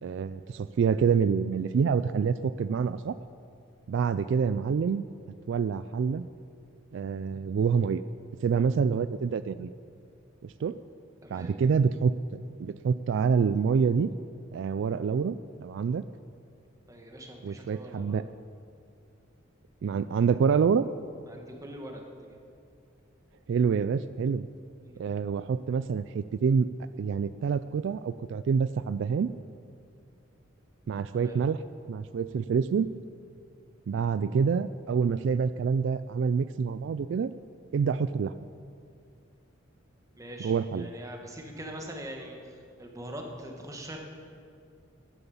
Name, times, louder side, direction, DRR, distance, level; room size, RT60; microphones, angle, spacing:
voice 1, 0.0-3.2 3.9-5.0 5.5-6.3 6.9-8.0 8.4-9.7 10.4-10.8 11.3-12.1 12.6-14.1 14.5-16.0 17.4-18.2 19.8-20.9 23.5-24.5 25.0-26.7 27.0-29.3 30.9-31.6 31.9-32.9 33.9-37.3 37.7-38.3 40.4-40.9, right 6 dB, 65° right, 13 dB, 0.3 m, -27 dB
voice 2, 11.2-11.5 16.9-18.2 21.3-22.4 24.8-25.0 31.1-31.4 40.1-44.0, right 1 dB, 15° right, 1 dB, 1.4 m, -43 dB
11.0 x 11.0 x 7.1 m, 2.4 s
head